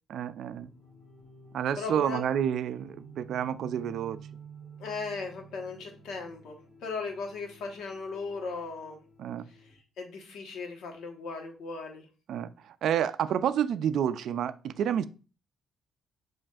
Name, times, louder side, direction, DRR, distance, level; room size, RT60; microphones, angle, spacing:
voice 1, 0.1-0.7 1.5-4.2 9.2-9.4 12.3-12.5 12.8-15.1, right 9 dB, 65° right, 0.3 m, -29 dB
sound 1, 0.6-9.8, right 4 dB, 25° left, 1.6 m, -51 dB
voice 2, 1.8-2.2 4.8-6.6 6.8-9.0 10.0-12.1, left 4 dB, 75° left, 1.1 m, -37 dB
7.3 x 2.5 x 2.4 m
cardioid pair, 135°, 0 cm